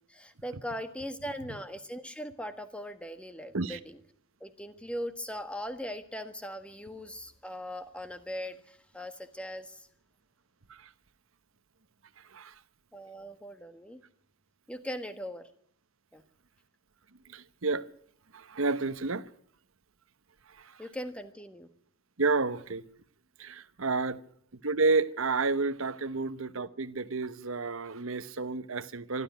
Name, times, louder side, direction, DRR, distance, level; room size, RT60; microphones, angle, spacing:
voice 1, 0.1-4.0 4.4-9.9 12.9-14.0 14.7-15.5 16.1-16.2 20.8-21.7, equal, 5° left, 1.5 m, -40 dB
voice 2, 17.3-17.8 18.3-19.2 20.6-20.8 22.2-22.8 23.4-24.2 24.6-29.2, right 3 dB, 70° right, 1.0 m, -30 dB
25.0 x 12.5 x 9.4 m
head